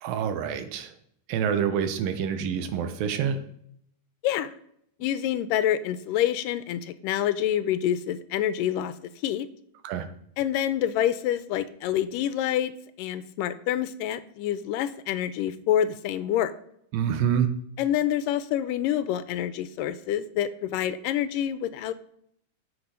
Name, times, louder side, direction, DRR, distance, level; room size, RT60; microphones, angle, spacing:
voice 1, 0.0-0.9 1.3-3.4 9.8-10.1 16.9-17.5, right 8 dB, 85° right, 9 dB, 2.8 m, -27 dB
voice 2, 4.2-4.6 5.0-8.9 9.2-9.5 10.4-16.5 17.8-21.9, left 11 dB, 85° left, 13 dB, 2.2 m, -27 dB
16.5 x 6.8 x 5.2 m, 0.71 s
omnidirectional pair, 4.0 m